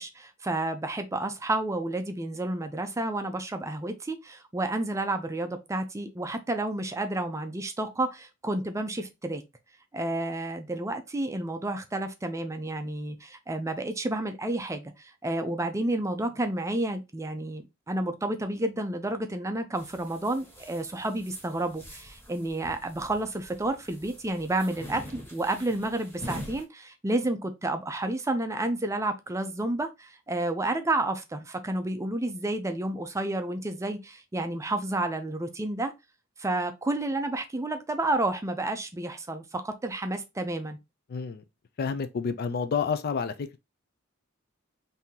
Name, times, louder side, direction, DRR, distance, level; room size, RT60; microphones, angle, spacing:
voice 1, 0.0-9.4 9.9-35.9 36.4-40.8, right 2 dB, 15° right, 0.5 m, -30 dB
sound 1, 19.7-26.6, equal, 10° left, 1.3 m, -44 dB
voice 2, 41.1-41.4 41.8-43.6, left 5 dB, 50° left, 0.4 m, -29 dB
3.7 x 2.7 x 2.8 m
head